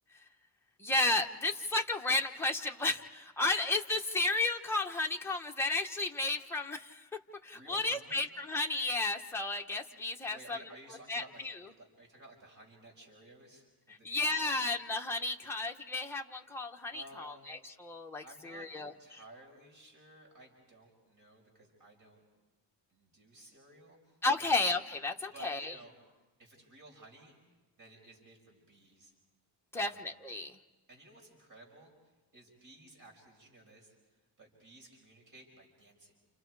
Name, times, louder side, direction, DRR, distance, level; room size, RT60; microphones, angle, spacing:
voice 1, 0.8-7.0 7.4-10.6 11.1-11.5 13.9-19.2 24.2-25.7 29.7-30.5, left 2 dB, 5° left, 1 dB, 1.0 m, -33 dB
voice 2, 7.5-8.3 10.3-11.4 11.7-14.5 16.9-17.5 18.2-22.2 22.9-24.6 25.3-25.9 26.4-27.4 27.8-29.1 29.7-30.1 30.9-31.9 32.3-33.9 34.4-36.1, right 2 dB, 50° right, 0 dB, 5.7 m, -55 dB
29.0 x 29.0 x 4.8 m, 1.2 s
wide cardioid pair, 150°, 43 cm